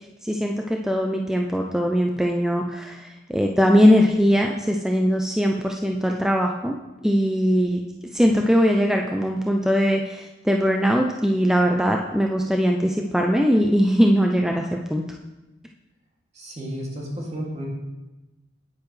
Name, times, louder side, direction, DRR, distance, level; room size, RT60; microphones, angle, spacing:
voice 1, 0.2-6.8 7.0-7.8 8.1-15.0, equal, 5° right, 1 dB, 0.4 m, -21 dB
voice 2, 16.3-17.7, equal, 35° right, -3 dB, 2.4 m, -32 dB
9.4 x 9.2 x 3.2 m, 1.1 s
head